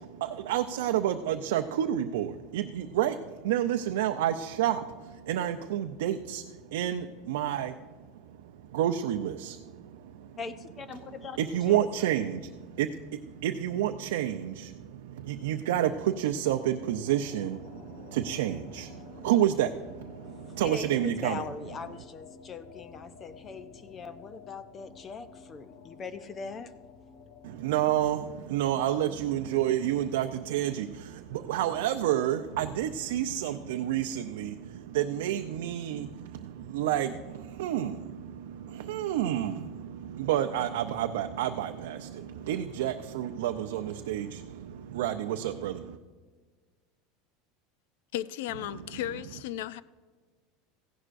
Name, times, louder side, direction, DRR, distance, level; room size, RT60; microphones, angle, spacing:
voice 1, 0.0-10.4 11.4-21.4 27.4-46.0, right 11 dB, 85° right, 5 dB, 0.5 m, -30 dB
voice 2, 10.4-11.4 11.7-12.1 20.6-26.7, left 5 dB, 20° left, 11 dB, 0.6 m, -41 dB
sound 1, 16.8-29.4, left 5 dB, 50° left, 1.1 m, -52 dB
voice 3, 48.1-49.8, left 12 dB, 70° left, 17 dB, 0.4 m, -35 dB
16.0 x 11.0 x 2.5 m, 1.5 s
supercardioid pair, 175°, 0 cm